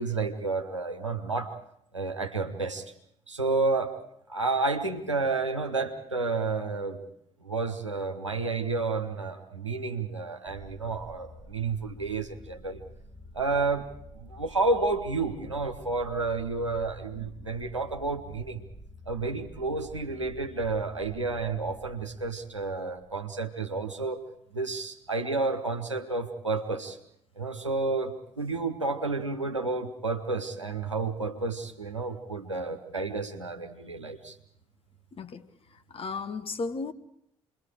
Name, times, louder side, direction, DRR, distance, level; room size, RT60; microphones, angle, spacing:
voice 1, 0.0-1.5 1.9-2.9 3.3-4.0 4.3-7.0 7.4-12.8 13.3-13.9 14.1-18.6 19.1-24.2 24.5-27.0 27.4-34.4, right 3 dB, 85° right, 1.2 m, -30 dB
sound 1, 10.5-23.3, left 1 dB, ahead, 2.1 m, -49 dB
voice 2, 35.9-36.9, left 4 dB, 35° left, 1.4 m, -34 dB
28.0 x 22.0 x 5.0 m
figure-of-eight pair, 45°, 15 cm